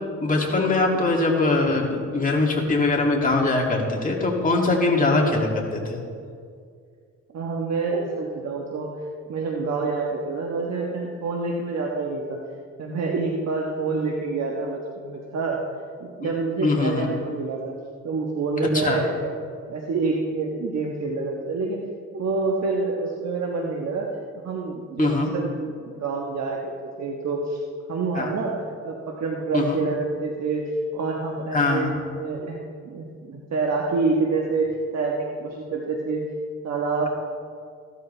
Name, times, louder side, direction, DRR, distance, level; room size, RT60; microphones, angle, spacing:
voice 1, 0.2-6.0 16.6-17.1 18.7-19.0 25.0-25.3 28.1-28.3 29.5-29.8 31.5-31.9, left 3 dB, 25° left, -2 dB, 2.6 m, -22 dB
voice 2, 7.3-8.9 9.3-12.4 12.8-15.6 16.0-17.7 18.0-19.4 19.7-21.8 22.1-24.1 24.4-27.6 27.9-28.5 28.8-30.6 30.9-31.9 32.1-34.7 34.9-36.2 36.6-37.1, right 4 dB, 60° right, -1 dB, 1.3 m, -27 dB
15.5 x 12.5 x 3.4 m, 2.2 s
cardioid pair, 90°, 30 cm